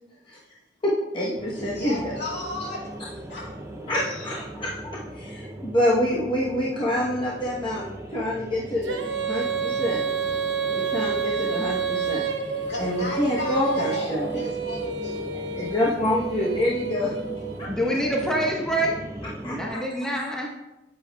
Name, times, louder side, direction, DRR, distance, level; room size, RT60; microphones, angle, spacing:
voice 1, 0.8-2.1 3.9-10.0 10.7-12.2 12.8-14.5 15.5-17.1 17.6-17.7 19.4-19.8, left 1 dB, 30° left, 1.0 m, -27 dB
sound 1, 1.4-19.7, right 1 dB, 15° right, 0.6 m, -39 dB
voice 2, 1.5-2.9 3.3-3.7 12.7-15.3 15.6-15.7, left 1 dB, 65° left, 2.4 m, -35 dB
Female singing, 8.8-17.6, right 6 dB, 70° right, 0.7 m, -29 dB
voice 3, 17.7-19.0 19.4-20.5, right 1 dB, 5° left, 1.1 m, -26 dB
9.6 x 8.5 x 2.3 m
head